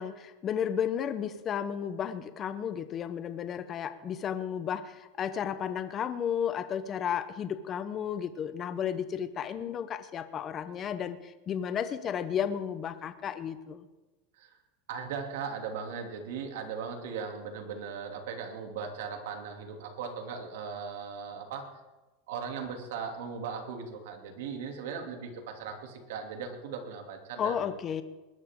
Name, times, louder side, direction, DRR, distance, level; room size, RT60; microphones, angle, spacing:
voice 1, 0.0-13.8 27.4-28.0, left 8 dB, 30° left, 11 dB, 0.8 m, -33 dB
voice 2, 14.9-21.6 22.3-27.7, right 6 dB, 75° right, 4 dB, 2.7 m, -38 dB
20.5 x 12.0 x 3.7 m, 1.1 s
supercardioid pair, 150°, 0 cm